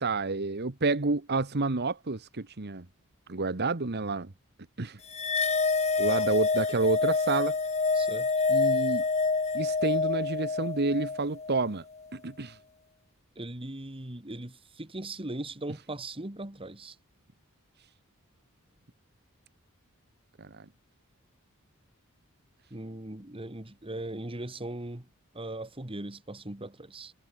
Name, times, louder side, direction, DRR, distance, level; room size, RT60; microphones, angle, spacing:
voice 1, 0.0-2.8 3.3-4.3 4.8-5.0 6.0-7.6 8.5-9.0 9.5-11.8 12.1-12.6 20.4-20.6, right 3 dB, 50° right, 1.3 m, -29 dB
sound 1, 5.1-11.7, left 4 dB, 30° left, 1.6 m, -27 dB
voice 2, 7.9-8.3 13.4-17.0 22.7-25.1 25.3-27.1, right 1 dB, 25° right, 2.0 m, -39 dB
head